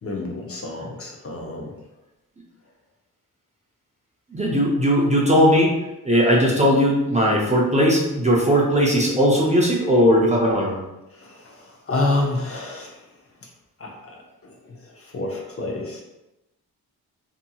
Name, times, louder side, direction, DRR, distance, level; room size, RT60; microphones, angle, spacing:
voice 1, 0.0-1.7 11.1-13.0 13.8-16.0, left 2 dB, 40° left, 0 dB, 0.5 m, -29 dB
voice 2, 4.3-5.7 6.0-10.8, equal, 20° right, -3 dB, 0.4 m, -18 dB
2.7 x 2.6 x 2.3 m, 0.95 s
wide cardioid pair, 115°, 37 cm